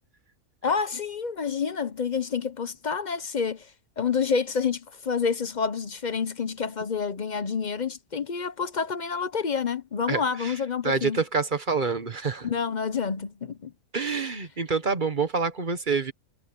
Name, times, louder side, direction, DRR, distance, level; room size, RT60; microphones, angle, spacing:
voice 1, 0.6-3.7 4.0-11.2 12.4-13.7, left 6 dB, 45° left, 0.6 m, -28 dB
voice 2, 10.1-10.5 10.8-12.5 13.9-16.1, right 4 dB, 35° right, 1.2 m, -27 dB
omnidirectional pair, 1.6 m